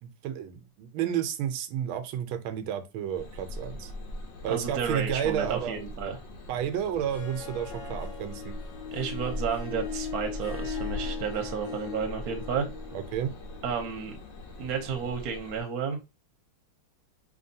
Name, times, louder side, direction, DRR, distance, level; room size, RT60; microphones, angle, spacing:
voice 1, 0.0-3.9 4.4-5.8 6.5-8.5 12.9-13.3, right 9 dB, 90° right, 1.5 m, -31 dB
sound 1, 3.1-15.6, left 1 dB, 70° left, 1.5 m, -41 dB
voice 2, 4.5-6.2 7.9-8.0 8.9-12.7 13.6-14.2 14.6-16.0, right 6 dB, 60° right, 1.2 m, -32 dB
Harp, 6.9-15.5, left 7 dB, 40° left, 1.0 m, -40 dB
4.4 x 3.4 x 2.7 m
omnidirectional pair, 2.2 m